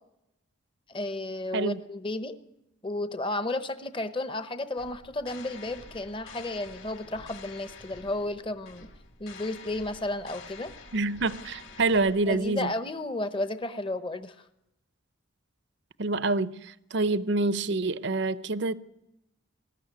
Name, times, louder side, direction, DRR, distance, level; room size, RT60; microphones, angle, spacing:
voice 1, 0.9-2.4 2.8-8.9 9.2-10.7 12.3-14.4, left 2 dB, 25° left, 0.8 m, -33 dB
sound 1, 4.8-12.7, left 4 dB, 70° left, 3.3 m, -48 dB
voice 2, 10.9-12.7 16.0-18.7, right 3 dB, 60° right, 0.7 m, -27 dB
20.5 x 14.0 x 9.6 m
head